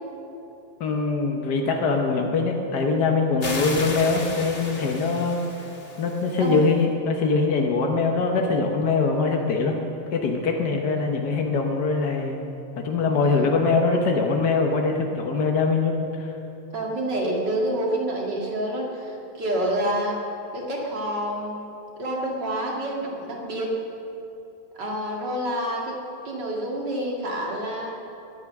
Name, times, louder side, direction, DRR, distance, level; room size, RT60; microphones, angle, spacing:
voice 1, 0.8-5.7 6.0-9.7 10.1-12.4 12.8-16.3, left 4 dB, 75° left, 2 dB, 0.9 m, -23 dB
sound 1, 3.4-6.7, left 2 dB, 40° left, 0.9 m, -34 dB
voice 2, 16.7-20.2 20.5-21.7 22.0-23.7 24.7-26.0 26.2-27.9, right 1 dB, 40° right, -1 dB, 2.6 m, -28 dB
22.5 x 9.8 x 6.0 m, 2.9 s
omnidirectional pair, 3.4 m